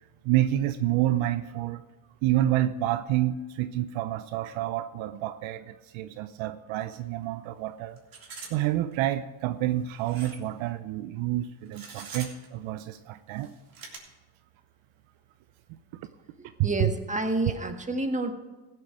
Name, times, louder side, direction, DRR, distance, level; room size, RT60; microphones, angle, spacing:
voice 1, 0.2-1.8 2.2-8.0 8.5-13.5 15.7-16.1 16.6-16.9, right 13 dB, 65° right, 12 dB, 0.7 m, -28 dB
sound 1, 6.8-7.0 7.2-7.3 8.0-8.5 8.9-9.0 10.0-10.5 11.7-12.5 13.3-14.0, right 4 dB, 45° right, 3.4 m, -43 dB
voice 2, 16.6-18.3, right 1 dB, 15° right, 6 dB, 1.7 m, -29 dB
16.0 x 7.7 x 4.9 m, 1.2 s
supercardioid pair, 70°, 50 cm